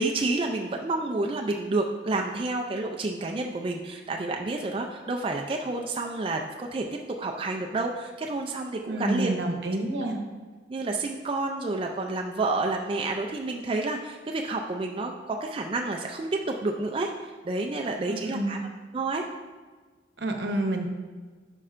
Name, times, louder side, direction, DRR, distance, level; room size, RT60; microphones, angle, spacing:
voice 1, 0.0-6.9 7.2-9.4 10.7-18.6 18.9-19.3, right 2 dB, 30° right, 2 dB, 0.4 m, -29 dB
voice 2, 8.8-10.2 18.1-18.6 20.2-20.8, right 1 dB, 75° right, 4 dB, 0.9 m, -29 dB
9.8 x 5.4 x 2.5 m, 1.4 s
head